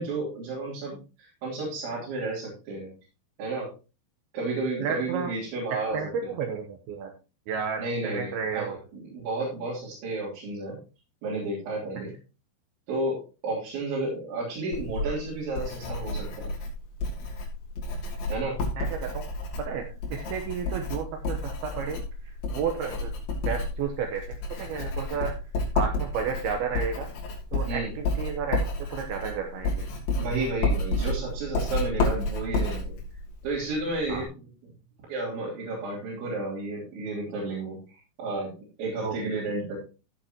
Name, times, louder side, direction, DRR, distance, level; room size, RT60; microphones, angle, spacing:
voice 1, 0.0-2.9 3.4-3.7 4.3-6.3 7.8-8.7 8.9-10.8 11.2-12.1 12.9-16.5 18.3-18.6 27.7-27.9 30.2-33.0 33.4-34.7 35.1-37.8 38.2-39.8, right 2 dB, 90° right, -7 dB, 5.7 m, -32 dB
voice 2, 4.8-5.3 5.7-7.1 7.5-8.8 18.8-19.2 19.6-22.0 22.5-23.1 23.5-24.2 24.6-25.3 25.8-27.1 27.5-29.9 34.1-34.2 39.0-39.1, right 6 dB, 70° right, 4 dB, 2.6 m, -32 dB
Writing, 14.7-34.3, left 2 dB, 85° left, 5.2 m, -31 dB
16.0 x 7.2 x 3.0 m, 0.32 s
omnidirectional pair, 5.1 m